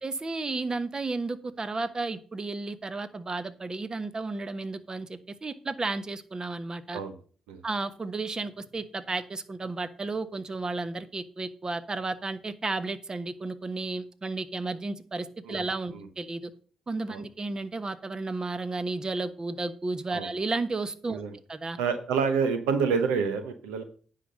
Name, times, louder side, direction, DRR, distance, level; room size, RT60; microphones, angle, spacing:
voice 1, 0.0-7.0 7.6-16.5 16.9-21.2 21.5-21.8, right 3 dB, 35° right, 12 dB, 1.2 m, -33 dB
voice 2, 21.8-23.8, right 5 dB, 85° right, 9 dB, 0.8 m, -28 dB
9.8 x 5.9 x 6.6 m, 0.42 s
hypercardioid pair, 40°, 2 cm